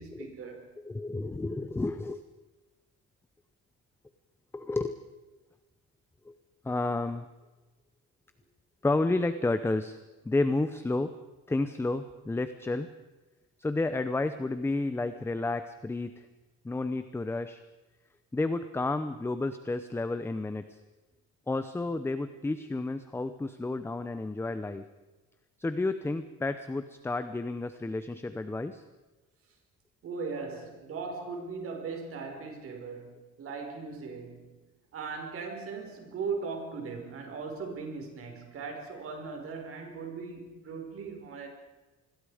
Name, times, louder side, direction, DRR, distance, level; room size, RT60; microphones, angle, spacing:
voice 1, 0.0-0.7 30.0-34.6 34.9-41.5, right 4 dB, 50° right, 3 dB, 5.3 m, -38 dB
voice 2, 0.8-2.2 4.5-5.0 6.2-6.3 6.6-7.3 8.8-10.0 10.2-11.1 11.5-12.9 13.6-16.3 16.6-17.6 18.3-20.8 21.5-24.8 25.6-28.8 31.2-31.3, left 2 dB, 10° left, 11 dB, 0.7 m, -31 dB
27.0 x 21.0 x 5.0 m, 1.2 s
cardioid pair, 175°, 29 cm